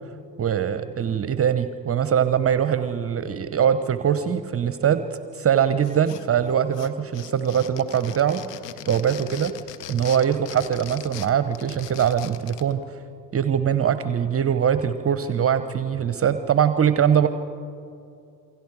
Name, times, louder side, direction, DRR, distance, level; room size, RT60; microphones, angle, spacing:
voice 1, 0.4-5.1 5.3-8.4 8.9-9.5 9.9-13.0 13.3-17.3, right 8 dB, 30° right, 11 dB, 0.9 m, -22 dB
sound 1, 5.8-6.5 6.7-12.7, left 11 dB, 75° left, 1.1 m, -40 dB
28.0 x 24.0 x 4.9 m, 2.5 s
figure-of-eight pair, 60°, 47 cm